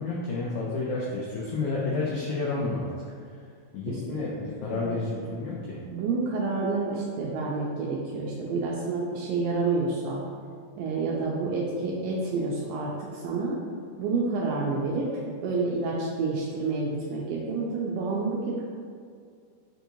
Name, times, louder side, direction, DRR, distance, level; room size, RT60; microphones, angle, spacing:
voice 1, 0.0-2.9 3.3-3.4 3.7-5.8, left 3 dB, 85° left, -5 dB, 1.7 m, -30 dB
voice 2, 4.7-5.1 5.9-10.2 10.8-13.6 14.0-18.7, right 3 dB, 80° right, -4 dB, 2.2 m, -29 dB
6.9 x 2.9 x 2.6 m, 2.2 s
omnidirectional pair, 4.1 m